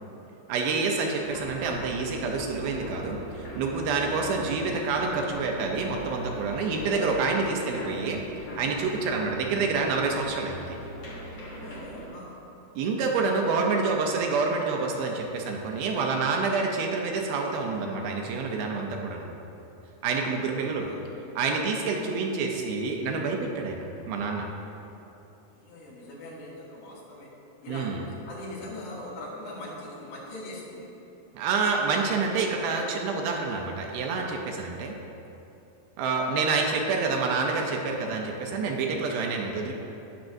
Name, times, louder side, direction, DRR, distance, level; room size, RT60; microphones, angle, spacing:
voice 1, 0.5-8.2 8.6-10.8 12.8-19.3 20.0-20.9 21.4-24.5 27.7-28.0 31.3-35.0 36.0-39.7, right 4 dB, 80° right, 1 dB, 2.4 m, -28 dB
sound 1, 1.2-12.1, equal, 50° left, 2.2 m, -40 dB
voice 2, 11.6-12.4 19.9-21.3 25.5-27.3 27.6-30.9, left 1 dB, 85° left, -6 dB, 3.9 m, -42 dB
17.5 x 5.9 x 2.6 m, 2.9 s
omnidirectional pair, 4.6 m